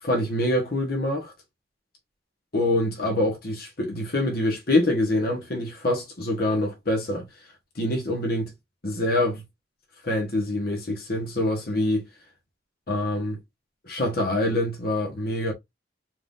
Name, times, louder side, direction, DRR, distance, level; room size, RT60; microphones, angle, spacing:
voice 1, 0.0-1.3 2.5-7.2 7.8-8.5 8.8-9.4 10.0-12.0 12.9-13.4 13.8-15.5, left 1 dB, 55° left, 1.4 m, -25 dB
4.6 x 2.6 x 3.7 m
head